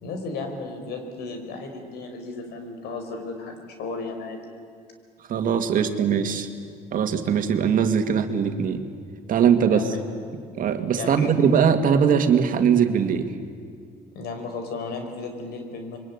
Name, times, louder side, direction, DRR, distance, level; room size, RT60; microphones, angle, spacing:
voice 1, 0.0-4.4 9.6-10.0 11.0-11.4 14.1-16.0, left 3 dB, 75° left, 5 dB, 5.0 m, -34 dB
voice 2, 5.3-6.5 6.9-8.8 9.3-9.8 10.6-13.3, right 7 dB, 55° right, 7 dB, 2.2 m, -21 dB
27.0 x 23.0 x 9.8 m, 2.2 s
cardioid pair, 110°, 17 cm